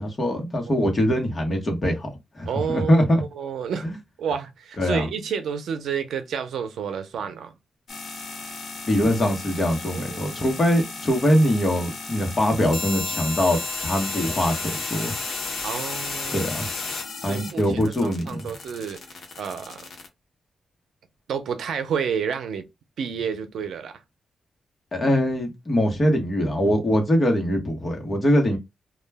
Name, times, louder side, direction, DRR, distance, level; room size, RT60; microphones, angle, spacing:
voice 1, 0.0-3.2 3.8-3.9 4.8-5.1 8.9-15.1 16.3-16.7 17.2-18.5 24.9-28.6, equal, 30° left, 1.0 m, -22 dB
voice 2, 2.5-3.1 3.3-3.9 4.2-7.5 9.9-10.5 15.6-16.5 17.2-19.0 19.4-19.8 21.3-22.7 23.0-24.0, right 7 dB, 85° right, 0.5 m, -30 dB
sound 1, 7.9-20.1, left 4 dB, 60° left, 0.8 m, -33 dB
2.3 x 2.2 x 3.3 m
wide cardioid pair, 120°, 0 cm